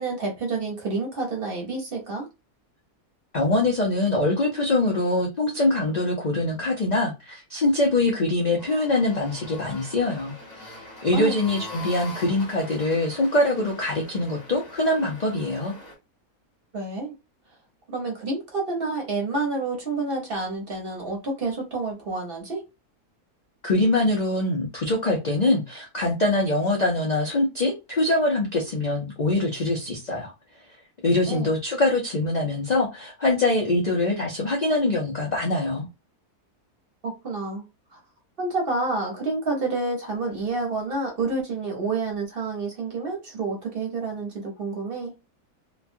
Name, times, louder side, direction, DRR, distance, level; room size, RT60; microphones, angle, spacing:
voice 1, 0.0-2.3 11.1-11.3 16.7-17.1 17.9-22.6 31.3-31.5 37.0-37.6 37.9-38.0 38.4-45.1, right 3 dB, 45° right, 0 dB, 0.9 m, -29 dB
voice 2, 3.3-10.7 11.0-15.7 23.6-30.3 31.0-35.9, left 2 dB, 75° left, 0 dB, 0.4 m, -23 dB
sound 1, 8.6-16.0, left 1 dB, 30° left, 1.4 m, -43 dB
3.1 x 2.2 x 2.6 m, 0.24 s
omnidirectional pair, 1.7 m